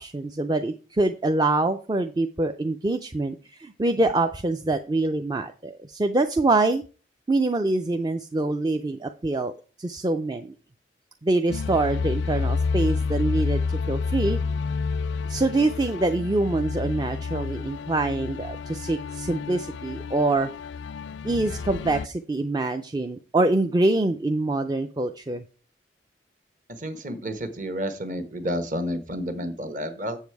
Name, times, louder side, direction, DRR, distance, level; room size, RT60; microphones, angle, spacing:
voice 1, 0.0-6.8 7.3-9.5 9.8-10.5 11.2-13.6 13.9-14.4 15.3-20.5 21.2-25.4, right 2 dB, 20° right, 7 dB, 0.4 m, -25 dB
sound 1, 11.5-22.1, left 4 dB, 75° left, 0.4 m, -29 dB
voice 2, 26.8-30.2, equal, 45° right, 8 dB, 1.2 m, -30 dB
7.3 x 7.3 x 4.6 m, 0.35 s
head